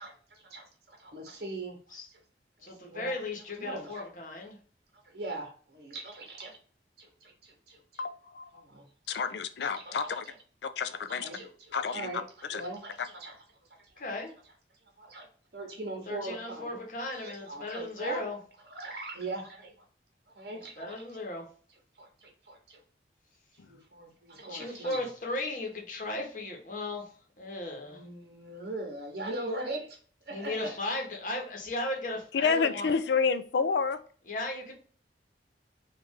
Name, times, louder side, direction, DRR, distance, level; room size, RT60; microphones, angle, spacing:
voice 1, 0.0-1.8 2.7-3.1 3.6-4.1 5.1-6.6 7.0-8.0 8.5-8.9 9.3-9.4 9.7-10.1 11.1-13.3 14.1-14.2 15.0-15.3 15.5-16.8 17.1-18.3 18.7-19.7 20.3-21.2 22.0-22.8 23.6-25.0 27.8-30.0 30.3-30.8, right 2 dB, 60° right, 2 dB, 0.9 m, -40 dB
voice 2, 2.6-4.6 14.0-14.3 16.1-18.4 20.8-21.5 24.5-27.1 27.4-28.0 30.3-32.9 34.3-34.7, left 2 dB, 45° left, 0 dB, 1.0 m, -36 dB
voice 3, 8.0-8.4 9.1-10.2 10.6-11.3 11.7-12.1 12.5-12.6 32.3-34.0, left 5 dB, 75° left, 11 dB, 0.4 m, -29 dB
3.2 x 2.4 x 3.5 m, 0.42 s
head